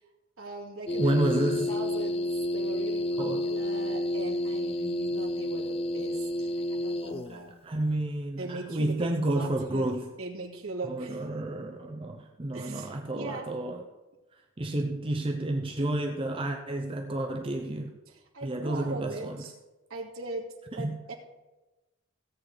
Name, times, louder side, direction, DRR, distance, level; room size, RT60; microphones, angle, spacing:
voice 1, 0.4-1.2 1.7-2.3 2.5-7.5 8.4-9.9 10.2-11.3 12.5-13.5 18.1-19.5 19.9-20.4 20.8-21.1, right 2 dB, 80° right, -2 dB, 2.3 m, -40 dB
sound 1, 0.9-7.4, left 1 dB, 25° left, 0.4 m, -30 dB
voice 2, 1.0-1.7 3.2-3.4 7.3-10.1 10.9-13.8 14.6-17.9 18.4-19.4 20.7-21.0, right 1 dB, 25° right, 2 dB, 0.7 m, -30 dB
17.0 x 8.1 x 3.9 m, 1.1 s
head